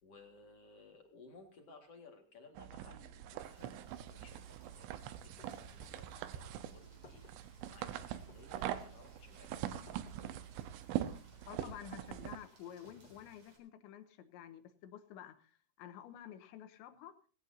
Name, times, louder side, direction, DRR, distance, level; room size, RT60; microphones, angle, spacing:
voice 1, 0.0-9.8, left 3 dB, 50° left, 4 dB, 1.9 m, -59 dB
sound 1, 2.6-12.4, right 11 dB, 85° right, 3.4 m, -43 dB
Rain, 3.4-13.6, right 2 dB, 30° right, 4.5 m, -67 dB
sound 2, 5.4-6.1 6.8-7.5 8.3-9.0 9.9-10.6 11.3-11.9 12.6-13.5, left 3 dB, 30° left, 2.2 m, -61 dB
voice 2, 11.5-17.1, left 10 dB, 75° left, 10 dB, 3.2 m, -51 dB
19.0 x 17.5 x 2.7 m, 0.40 s
omnidirectional pair, 5.6 m